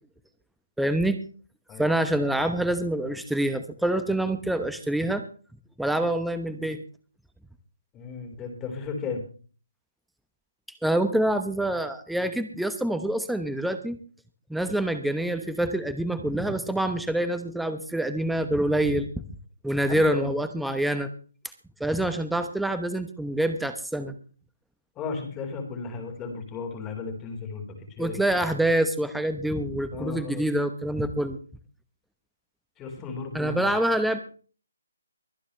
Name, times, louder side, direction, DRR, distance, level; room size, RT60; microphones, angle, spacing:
voice 1, 0.8-1.2 1.8-5.2 5.8-6.8 10.8-14.0 14.5-19.2 19.6-21.1 21.8-24.1 28.0-31.4 33.3-34.2, right 1 dB, ahead, 9 dB, 1.0 m, -26 dB
voice 2, 7.9-9.2 19.9-20.4 25.0-28.2 29.9-30.5 32.8-33.7, left 5 dB, 15° left, 3 dB, 4.3 m, -35 dB
24.0 x 9.9 x 3.3 m, 0.39 s
figure-of-eight pair, 150°, 0 cm